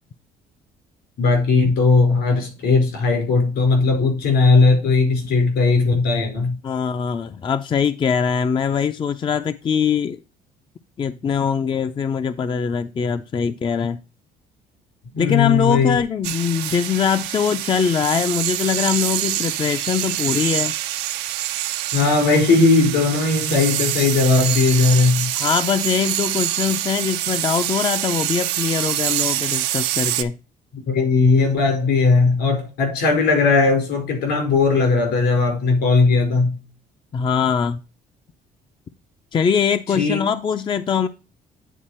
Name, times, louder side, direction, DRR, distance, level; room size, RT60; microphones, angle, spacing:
voice 1, 1.2-6.6 15.1-16.0 21.9-25.3 30.9-36.6 40.0-40.2, left 4 dB, 75° left, 4.8 m, -17 dB
voice 2, 6.6-10.2 11.0-14.0 15.2-20.7 25.4-30.3 37.1-37.8 39.3-41.1, left 7 dB, 30° left, 0.4 m, -22 dB
sound 1, 16.2-30.2, right 13 dB, 90° right, 0.6 m, -25 dB
9.2 x 4.2 x 4.3 m
cardioid pair, 110°, 17 cm